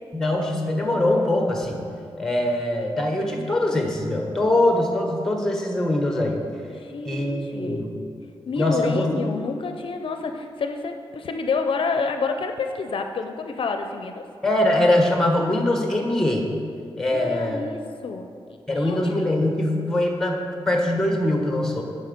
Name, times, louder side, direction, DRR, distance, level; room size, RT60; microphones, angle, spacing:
voice 1, 0.1-1.8 2.2-6.4 7.0-7.9 8.6-9.2 14.4-16.5 17.0-17.6 18.7-21.8, left 1 dB, 5° left, 2 dB, 1.2 m, -22 dB
voice 2, 6.7-7.9 8.5-14.2 17.1-19.1, left 4 dB, 65° left, 6 dB, 0.5 m, -29 dB
8.4 x 6.2 x 5.2 m, 2.4 s
wide cardioid pair, 125°, 10 cm